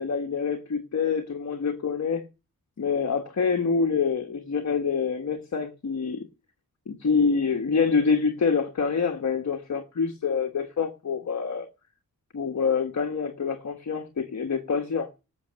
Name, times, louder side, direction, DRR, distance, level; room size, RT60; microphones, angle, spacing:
voice 1, 0.0-2.2 2.8-6.2 6.9-11.7 12.3-15.2, left 5 dB, 50° left, 1.3 m, -26 dB
18.5 x 6.5 x 6.4 m
wide cardioid pair, 150°, 36 cm